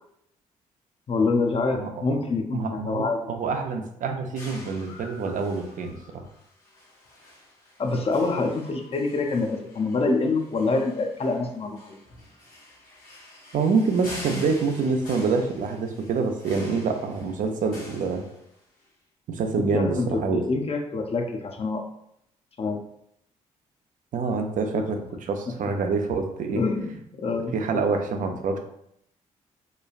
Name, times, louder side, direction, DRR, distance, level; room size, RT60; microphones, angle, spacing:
voice 1, 1.1-3.2 7.8-12.0 19.5-21.8 22.6-22.8 25.5-25.6 26.6-27.8, left 3 dB, 40° left, 3 dB, 0.5 m, -26 dB
voice 2, 1.8-2.2 2.5-6.3 13.5-18.3 19.3-20.4 24.1-26.6 27.5-28.6, right 4 dB, 55° right, 5 dB, 0.5 m, -26 dB
sound 1, 4.4-18.8, left 1 dB, 65° left, 1.5 m, -46 dB
3.0 x 2.2 x 2.4 m, 0.74 s
hypercardioid pair, 45°, 16 cm